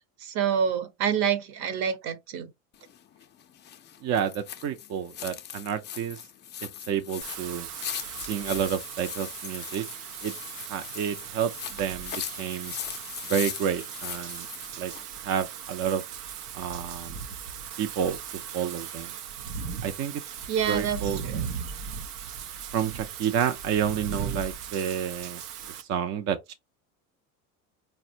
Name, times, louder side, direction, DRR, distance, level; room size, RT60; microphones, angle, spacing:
voice 1, 0.2-2.5 20.5-21.7, right 8 dB, 55° right, 0.9 m, -28 dB
sound 1, 2.7-15.1, left 9 dB, 25° left, 0.4 m, -40 dB
voice 2, 4.0-6.2 6.9-7.7 8.2-9.9 10.2-10.3 10.7-12.7 13.3-14.5 14.8-14.9 15.2-16.0 16.5-17.2 17.8-18.2 18.5-19.1 19.8-20.2 20.7-21.2 22.7-25.4 25.8-26.5, right 8 dB, 40° right, 0.4 m, -29 dB
Wind / Rain, 7.2-25.8, right 7 dB, 85° right, 0.6 m, -38 dB
4.0 x 2.1 x 2.6 m
hypercardioid pair, 80°, 44 cm